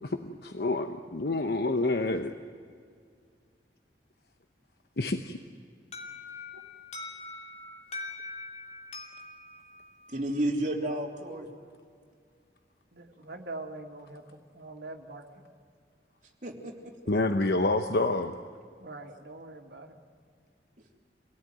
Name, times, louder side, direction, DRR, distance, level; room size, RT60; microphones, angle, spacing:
voice 1, 0.0-2.3 5.0-5.4 17.1-18.3, left 2 dB, 65° left, 6 dB, 1.0 m, -28 dB
Alarm, 5.9-10.7, left 3 dB, 40° left, 2.9 m, -43 dB
voice 2, 10.1-11.5 16.4-16.9, right 1 dB, 45° right, 0 dB, 3.2 m, -31 dB
voice 3, 12.9-15.4 18.8-20.0, right 2 dB, 75° right, 3 dB, 2.4 m, -43 dB
26.5 x 17.5 x 9.3 m, 2.1 s
head